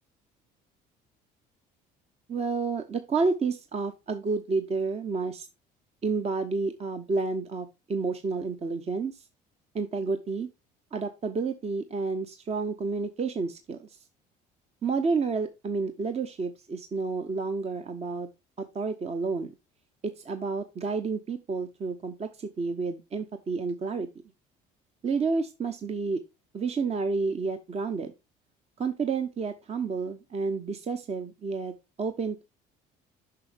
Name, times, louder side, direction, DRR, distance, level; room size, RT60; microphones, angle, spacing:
voice 1, 2.3-5.5 6.0-9.1 9.7-10.5 10.9-13.8 14.8-18.3 18.7-19.5 20.0-24.1 25.0-26.2 26.5-28.1 28.8-31.7 32.0-32.4, right 4 dB, 35° right, 8 dB, 0.8 m, -30 dB
6.8 x 5.7 x 3.4 m, 0.26 s
supercardioid pair, 75°, 19 cm